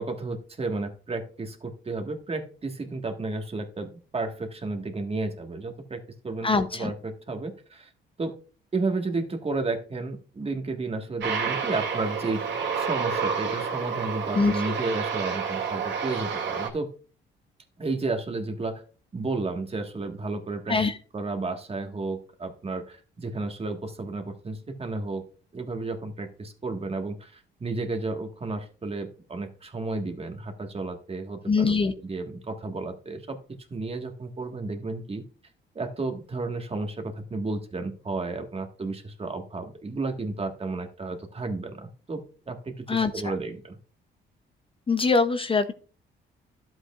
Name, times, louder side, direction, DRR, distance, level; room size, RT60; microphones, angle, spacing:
voice 1, 0.0-7.9 8.2-8.4 8.7-12.4 12.7-16.9 17.8-18.8 19.1-20.8 21.1-25.2 25.5-31.8 32.0-33.4 33.7-35.2 35.7-43.8, right 3 dB, 30° right, 5 dB, 1.6 m, -32 dB
voice 2, 6.4-6.9 14.3-14.7 20.7-21.0 31.5-31.9 42.9-43.3 44.9-45.7, left 4 dB, 25° left, 9 dB, 0.6 m, -23 dB
Aircraft, 11.2-16.7, right 6 dB, 65° right, 2.2 m, -29 dB
11.5 x 7.9 x 2.4 m, 0.39 s
cardioid pair, 90°, 20 cm